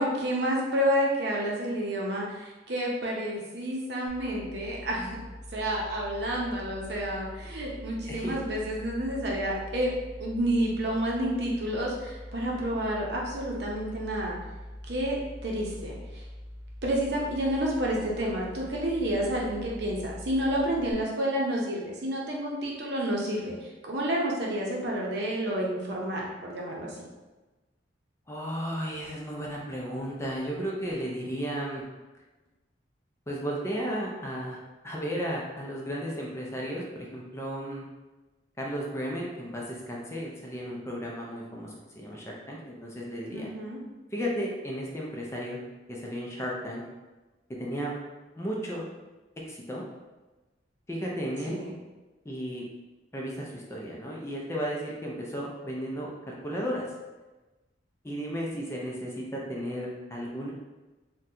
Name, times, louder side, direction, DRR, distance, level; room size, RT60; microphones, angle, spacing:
voice 1, 0.0-5.2 5.5-9.9 10.2-14.4 14.9-16.2 16.8-23.5 23.8-26.9 43.3-43.8 51.5-51.7, equal, 65° right, -3 dB, 0.7 m, -29 dB
sound 1, 4.1-20.9, left 1 dB, 20° right, 0.9 m, -43 dB
voice 2, 28.3-31.8 33.3-34.6 34.8-37.8 38.6-43.5 44.1-45.6 45.9-46.8 47.6-47.9 48.4-48.9 49.4-49.8 50.9-51.6 52.2-52.6 53.1-56.9 58.0-60.5, equal, 15° left, -3 dB, 0.4 m, -34 dB
3.8 x 2.2 x 2.7 m, 1.2 s
head